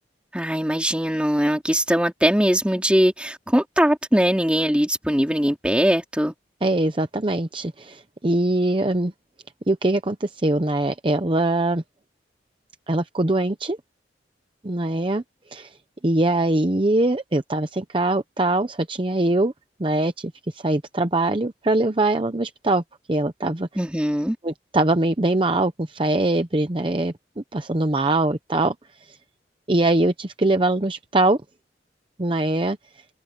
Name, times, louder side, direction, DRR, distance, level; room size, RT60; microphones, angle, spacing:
voice 1, 0.3-6.3 23.8-24.4, equal, 5° right, 3.5 m, -21 dB
voice 2, 6.6-9.1 9.7-11.8 12.9-13.8 14.6-15.2 15.5-15.7 16.0-19.5 19.8-22.8 23.1-23.7 24.4-27.1 27.5-28.7 29.7-31.4 32.2-32.8, right 2 dB, 30° right, 0.8 m, -22 dB
head